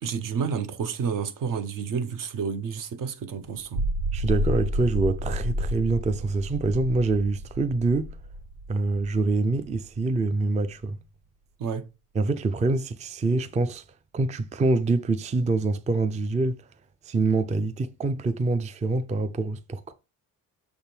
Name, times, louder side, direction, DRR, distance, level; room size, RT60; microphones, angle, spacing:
voice 1, 0.0-3.8 11.6-11.9, right 6 dB, 60° right, 0.9 m, -30 dB
sound 1, 3.6-10.1, equal, 90° right, 1.2 m, -31 dB
voice 2, 4.1-8.1 8.7-11.0 12.1-13.8 14.1-16.6 17.1-19.9, right 3 dB, 20° right, 0.4 m, -25 dB
6.6 x 3.5 x 4.4 m
cardioid pair, 120°, 36 cm